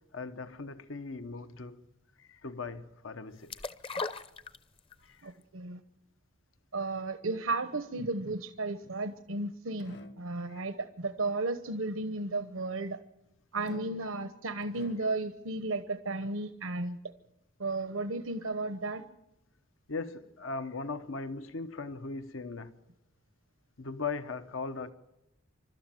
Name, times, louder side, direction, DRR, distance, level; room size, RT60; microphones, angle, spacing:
voice 1, 0.1-1.8 2.2-3.5 5.0-5.3 10.5-10.6 19.9-22.7 23.8-24.9, left 4 dB, 75° left, 1.0 m, -39 dB
sound 1, 3.5-5.0 5.4-5.5, left 4 dB, 25° left, 0.7 m, -37 dB
voice 2, 5.2-5.8 6.7-13.0 13.5-17.0 17.6-19.0, right 2 dB, 85° right, 1.1 m, -34 dB
sound 2, 8.8-9.4 9.8-10.4 13.6-14.2 14.6-15.3, left 1 dB, 55° left, 1.4 m, -49 dB
27.5 x 13.0 x 9.2 m
head